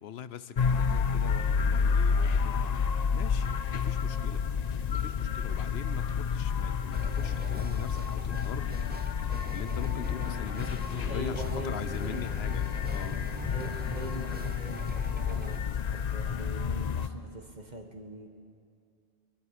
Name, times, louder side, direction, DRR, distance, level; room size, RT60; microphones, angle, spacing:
voice 1, 0.0-2.9 3.1-4.4 4.9-9.1 9.5-13.2, left 9 dB, 70° left, 14 dB, 1.0 m, -42 dB
sound 1, 0.6-17.1, left 6 dB, 45° left, 0.6 m, -30 dB
sound 2, 6.9-15.6, right 1 dB, 15° right, 0.4 m, -42 dB
voice 2, 11.1-12.3 13.4-18.3, right 1 dB, 40° right, 4 dB, 1.6 m, -42 dB
22.5 x 13.0 x 9.9 m, 2.3 s
omnidirectional pair, 1.1 m